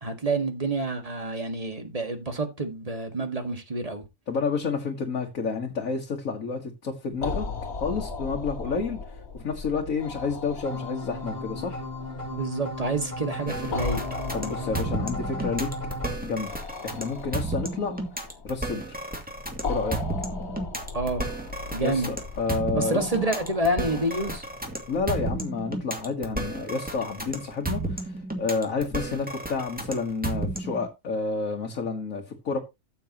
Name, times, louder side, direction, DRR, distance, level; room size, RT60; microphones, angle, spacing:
voice 1, 0.0-4.0 8.6-8.8 12.3-14.0 20.9-21.3 21.7-22.1 22.7-24.4, right 2 dB, 25° right, 1.9 m, -28 dB
voice 2, 4.3-7.5 7.8-9.0 9.3-11.8 14.3-15.7 16.2-16.5 16.8-19.0 19.7-20.0 21.8-23.1 24.9-32.6, left 4 dB, 80° left, 1.9 m, -30 dB
sound 1, 7.1-25.3, left 3 dB, 50° left, 1.9 m, -38 dB
sound 2, 10.6-16.1, left 2 dB, 30° left, 2.7 m, -35 dB
sound 3, 13.5-30.9, right 2 dB, 5° right, 2.1 m, -32 dB
13.5 x 7.7 x 2.9 m
omnidirectional pair, 1.4 m